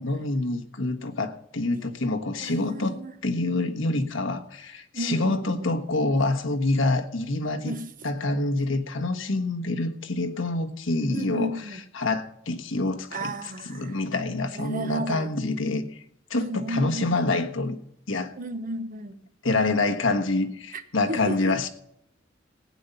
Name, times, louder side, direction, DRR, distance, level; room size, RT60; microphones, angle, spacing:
voice 1, 0.0-7.7 8.0-11.5 11.9-13.3 13.7-16.0 16.3-17.8 18.1-18.3 19.4-21.7, left 2 dB, 90° left, 1.4 m, -26 dB
voice 2, 2.4-3.1 4.9-5.7 7.6-7.8 11.1-11.8 13.1-14.0 14.5-15.3 16.4-17.1 18.4-19.2 20.7-20.8 21.1-21.5, right 1 dB, 45° right, 1.1 m, -33 dB
16.5 x 9.6 x 5.5 m
head